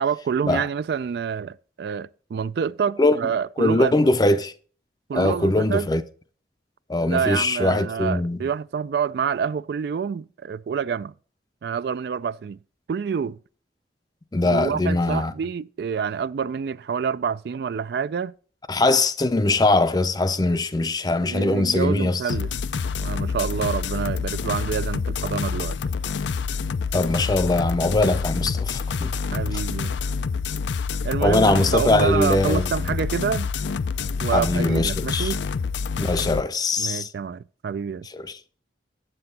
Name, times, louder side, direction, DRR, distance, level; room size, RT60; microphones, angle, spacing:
voice 1, 0.0-3.9 5.1-5.9 7.0-11.1 11.6-12.6 12.9-13.4 14.4-18.3 21.2-22.5 23.0-25.8 29.3-29.9 31.0-33.5 34.2-35.4 36.8-38.1, right 6 dB, 60° right, 0.3 m, -27 dB
voice 2, 3.6-4.5 5.1-6.0 6.9-8.4 14.3-15.3 18.7-22.3 26.9-29.1 31.2-32.6 34.3-35.3 36.0-37.1 38.1-38.4, left 2 dB, 20° left, 0.5 m, -21 dB
sound 1, 22.3-36.4, left 5 dB, 85° left, 0.5 m, -27 dB
7.7 x 7.7 x 4.1 m
head